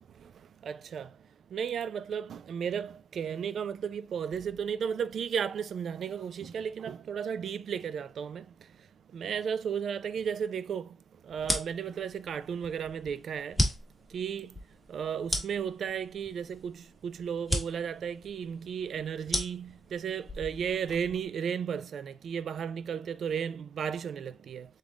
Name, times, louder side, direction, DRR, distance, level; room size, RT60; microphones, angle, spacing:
voice 1, 0.6-1.1 1.5-8.4 9.1-10.9 11.3-13.6 14.1-14.5 14.9-24.7, right 7 dB, 65° right, 0.3 m, -34 dB
sound 1, 11.4-21.3, left 1 dB, 5° left, 1.4 m, -35 dB
3.7 x 3.6 x 3.8 m
cardioid pair, 115°, 0 cm